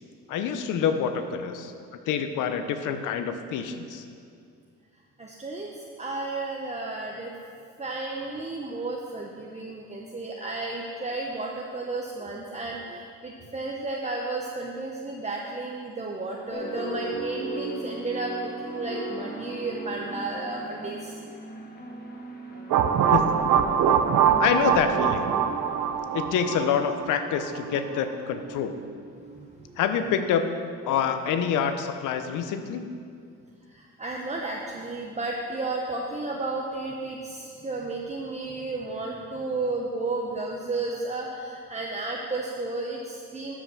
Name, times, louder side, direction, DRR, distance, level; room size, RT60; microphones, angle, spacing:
voice 1, 0.3-1.7 2.1-4.0 23.1-23.4 24.4-25.3 26.1-28.8 29.8-30.5 30.8-32.9, left 7 dB, 85° left, 8 dB, 0.8 m, -26 dB
voice 2, 5.2-5.7 6.0-7.3 7.8-21.2 29.3-29.8 33.7-43.5, right 2 dB, 20° right, -1 dB, 1.0 m, -33 dB
sound 1, 16.5-29.9, right 2 dB, 30° left, 1.6 m, -38 dB
sound 2, 22.7-27.5, right 8 dB, 80° right, 0.7 m, -23 dB
12.5 x 5.8 x 6.2 m, 2.4 s
cardioid pair, 90°, 30 cm